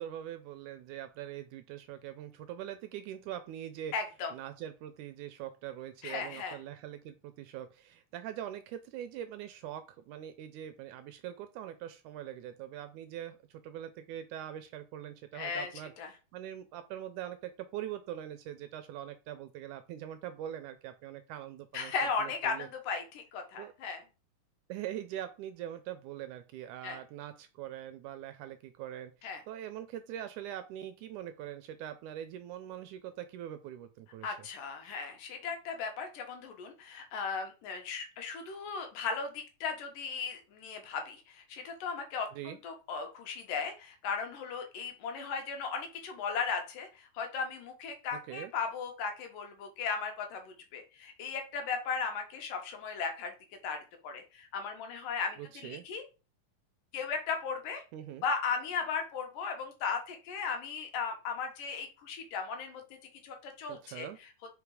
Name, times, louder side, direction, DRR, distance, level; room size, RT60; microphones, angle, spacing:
voice 1, 0.0-3.9 4.3-15.9 16.3-22.7 23.6-23.7 24.7-29.1 29.5-34.5 42.3-42.6 48.1-48.5 55.4-55.9 57.9-58.3 63.7-64.2, right 11 dB, 80° right, 10 dB, 1.9 m, -43 dB
voice 2, 3.9-4.3 6.0-6.6 15.3-15.7 16.0-16.1 21.7-24.0 26.8-27.0 29.2-29.4 34.2-53.3 53.6-53.8 54.0-56.0 56.9-57.8 58.2-62.8 63.2-64.1, left 5 dB, 75° left, 4 dB, 2.9 m, -36 dB
5.1 x 5.1 x 4.8 m, 0.31 s
omnidirectional pair, 3.9 m